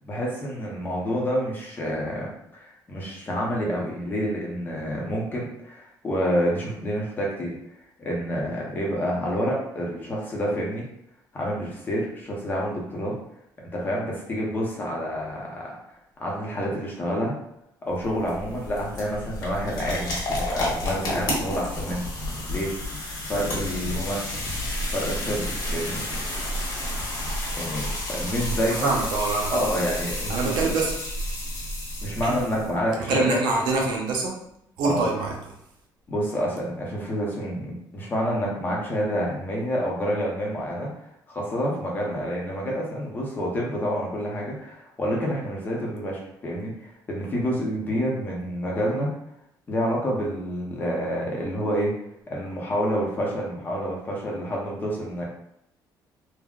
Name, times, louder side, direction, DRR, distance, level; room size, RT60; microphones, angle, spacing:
voice 1, 0.0-7.5 8.0-10.9 11.3-13.1 13.6-15.8 16.2-17.3 17.8-22.7 23.3-24.3 24.9-26.0 27.6-29.0 29.5-30.5 32.0-33.4 34.8-35.1 36.1-40.9 41.3-49.1 49.7-51.9 52.3-55.2, equal, 25° left, -3 dB, 0.7 m, -28 dB
sound 1, 17.9-32.8, left 1 dB, 55° left, 1.0 m, -30 dB
voice 2, 28.6-29.6 30.3-30.9 32.2-32.3 33.0-34.4 34.8-35.3, right 3 dB, 75° right, 0 dB, 0.7 m, -25 dB
3.5 x 2.1 x 2.4 m, 0.77 s
cardioid pair, 165°, 8 cm